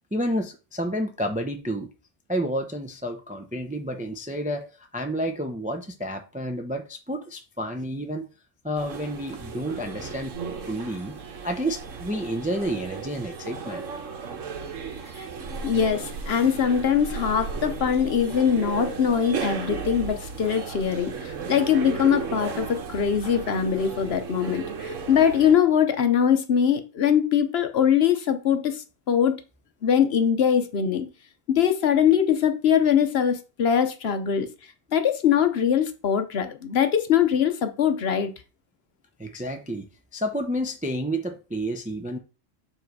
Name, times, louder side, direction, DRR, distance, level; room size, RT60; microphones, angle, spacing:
voice 1, 0.1-1.9 2.3-8.3 8.6-10.4 10.7-11.2 11.4-13.8 39.2-39.9 40.1-42.2, equal, 10° right, 0.4 m, -30 dB
sound 1, 8.8-25.5, right 5 dB, 80° right, 1.3 m, -35 dB
voice 2, 15.6-28.8 29.1-29.4 29.8-31.1 31.5-34.5 34.9-38.3, left 8 dB, 60° left, 0.9 m, -22 dB
7.3 x 3.2 x 4.6 m
omnidirectional pair, 1.3 m